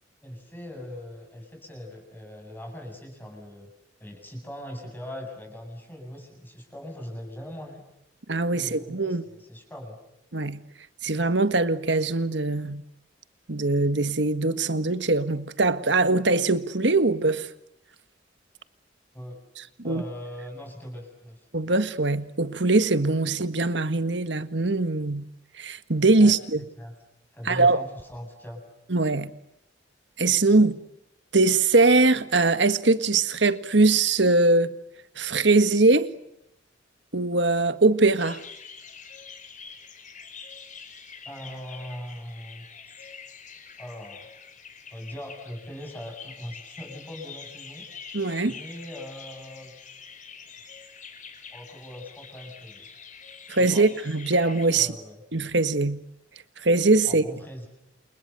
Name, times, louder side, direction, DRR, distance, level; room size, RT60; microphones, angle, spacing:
voice 1, 0.2-3.7 4.0-7.8 8.5-10.0 19.1-19.4 19.8-21.5 26.2-26.3 26.8-27.0 27.3-28.6 30.4-30.6 41.2-43.1 43.8-44.3 44.9-47.9 48.4-49.7 51.5-52.9 53.6-53.9 54.7-55.2 57.1-57.7, equal, 10° left, 7.9 m, -40 dB
voice 2, 8.3-9.2 10.3-10.6 11.0-12.8 13.5-17.5 19.9-20.0 21.5-25.2 25.6-26.6 27.5-27.8 28.9-29.3 30.2-30.8 31.3-34.7 35.2-36.1 37.1-38.4 48.1-48.5 53.5-54.9 55.3-56.0 56.6-57.2, right 3 dB, 65° right, 1.7 m, -22 dB
sound 1, 38.2-54.7, left 6 dB, 40° left, 5.5 m, -45 dB
29.5 x 28.5 x 6.9 m
head